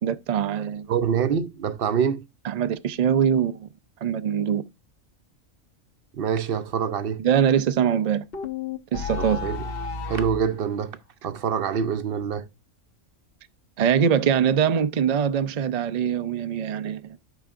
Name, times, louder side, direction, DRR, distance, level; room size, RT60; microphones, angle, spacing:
voice 1, 0.0-0.9 2.4-3.7 4.0-4.6 7.2-8.3 8.9-9.4 13.8-17.1, right 8 dB, 80° right, 0.3 m, -23 dB
voice 2, 0.9-2.2 6.1-7.2 9.2-9.6 10.1-12.5, right 7 dB, 55° right, 0.8 m, -26 dB
sound 1, 8.3-10.5, left 4 dB, 50° left, 1.0 m, -31 dB
12.0 x 5.7 x 2.5 m
omnidirectional pair, 1.4 m